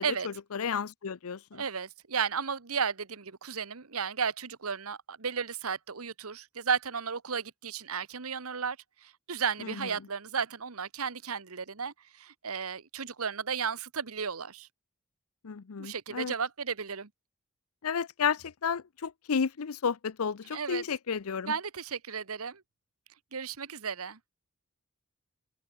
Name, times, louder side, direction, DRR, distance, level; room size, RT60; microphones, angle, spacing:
voice 1, 0.0-1.6 9.6-9.9 15.4-16.3 17.8-21.5, left 6 dB, 80° left, 0.6 m, -32 dB
voice 2, 1.5-8.8 9.0-14.7 15.8-17.1 20.5-20.8 21.5-22.6 23.3-24.2, right 6 dB, 85° right, 1.3 m, -34 dB
open air
head